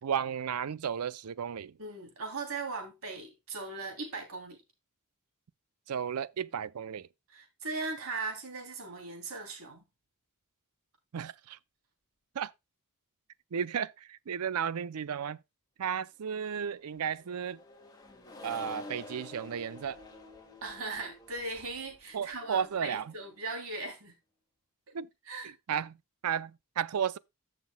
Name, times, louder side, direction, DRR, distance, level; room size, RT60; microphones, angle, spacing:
voice 1, 0.0-1.8 5.9-7.1 11.1-11.6 12.3-12.5 13.5-15.4 15.8-17.6 18.4-20.0 22.1-23.1 24.9-25.1 25.4-26.0 26.2-27.2, right 7 dB, 90° right, 0.5 m, -34 dB
voice 2, 1.8-4.6 7.3-9.8 20.6-24.1 25.3-25.5, right 3 dB, 65° right, 3.0 m, -39 dB
Accelerating revving vroom, 16.9-23.5, left 2 dB, 20° left, 2.0 m, -49 dB
14.5 x 5.9 x 2.2 m
head